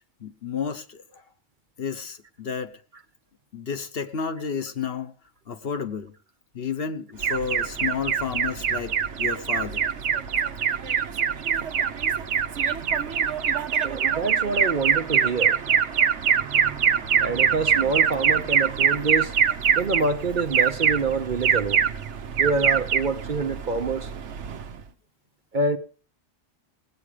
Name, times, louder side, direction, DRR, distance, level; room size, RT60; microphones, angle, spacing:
voice 1, 0.2-1.0 1.8-2.7 3.5-5.1 5.5-6.1 6.5-9.9, left 6 dB, 55° left, 1.1 m, -31 dB
Alarm, 7.2-24.8, right 7 dB, 70° right, 1.1 m, -24 dB
voice 2, 13.8-15.6 17.2-19.3 19.8-21.9 22.4-24.1 25.5-25.8, right 4 dB, 45° right, 0.9 m, -26 dB
19.0 x 8.6 x 5.0 m
omnidirectional pair, 1.2 m